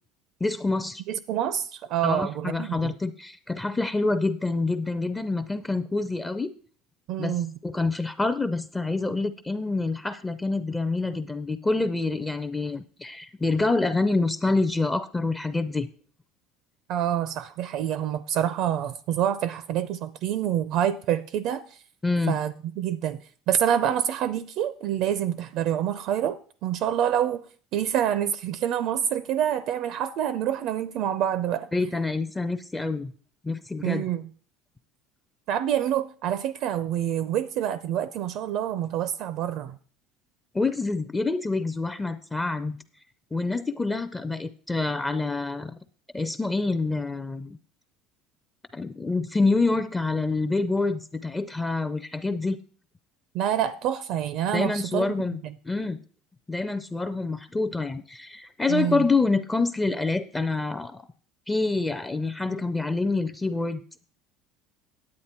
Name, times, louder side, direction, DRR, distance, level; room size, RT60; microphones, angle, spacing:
voice 1, 0.4-1.0 2.0-6.5 7.2-7.4 7.6-15.9 22.0-22.4 31.7-33.1 33.4-34.1 40.5-42.8 43.3-45.7 46.1-47.6 48.7-52.6 54.5-55.4 55.6-56.0 56.5-61.0 61.5-63.8, left 3 dB, 10° left, 0.4 m, -27 dB
voice 2, 1.1-2.9 7.1-7.5 16.9-21.6 22.3-23.2 23.5-27.4 27.7-31.7 33.8-34.2 35.5-39.8 53.3-55.1 55.4-55.5 58.7-59.1, right 10 dB, 55° right, 0.4 m, -27 dB
9.6 x 8.4 x 4.3 m
cardioid pair, 155°, 0 cm